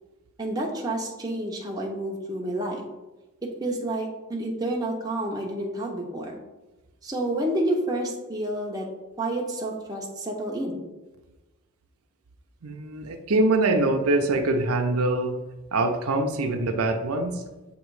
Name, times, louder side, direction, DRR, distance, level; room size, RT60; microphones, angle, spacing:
voice 1, 0.4-2.9 3.4-6.4 7.0-8.9 9.2-10.8, right 1 dB, 15° right, -1 dB, 0.8 m, -29 dB
voice 2, 12.6-15.4 15.7-17.4, right 2 dB, 80° right, 4 dB, 0.7 m, -24 dB
7.1 x 3.1 x 4.7 m, 1.1 s
head